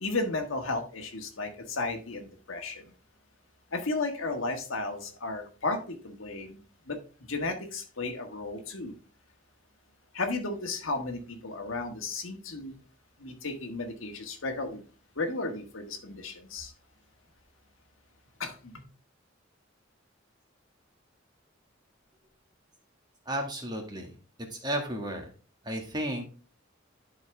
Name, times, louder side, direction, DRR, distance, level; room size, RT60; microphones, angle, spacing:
voice 1, 0.0-2.8 3.7-6.6 6.9-7.0 7.3-8.9 10.1-12.8 13.2-14.8 15.1-16.7 18.4-18.8, left 3 dB, 90° left, 1.5 m, -34 dB
voice 2, 23.3-24.2 24.6-25.3 25.6-26.2, right 1 dB, 20° right, 1.8 m, -33 dB
11.5 x 4.8 x 3.4 m
head